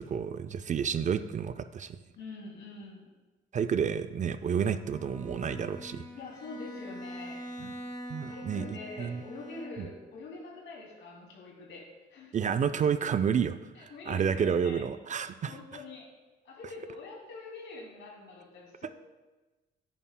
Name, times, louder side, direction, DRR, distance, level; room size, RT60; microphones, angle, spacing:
voice 1, 0.0-2.0 3.5-6.0 7.6-7.7 8.1-9.2 9.8-9.9 12.3-15.5, right 7 dB, 40° right, 11 dB, 0.4 m, -30 dB
voice 2, 2.2-3.1 6.1-7.7 8.3-12.4 13.7-14.8 15.4-16.1 16.4-18.9, left 3 dB, 70° left, -2 dB, 2.6 m, -45 dB
Bowed string instrument, 4.8-10.1, equal, 20° left, 2.1 m, -44 dB
10.5 x 9.2 x 2.2 m, 1.2 s
cardioid pair, 90°, 20 cm